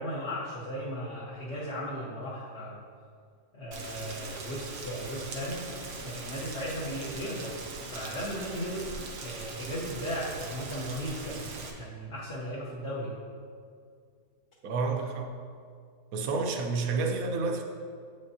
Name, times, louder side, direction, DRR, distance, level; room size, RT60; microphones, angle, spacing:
voice 1, 0.0-2.8 3.5-5.7 6.0-7.5 7.9-8.8 9.2-13.2, equal, 50° left, -8 dB, 1.1 m, -36 dB
Rain, 3.7-11.7, right 3 dB, 90° right, 1.4 m, -41 dB
voice 2, 14.6-15.3 16.1-17.6, right 4 dB, 65° right, 4 dB, 1.0 m, -29 dB
8.7 x 5.1 x 2.8 m, 2.2 s
omnidirectional pair, 1.7 m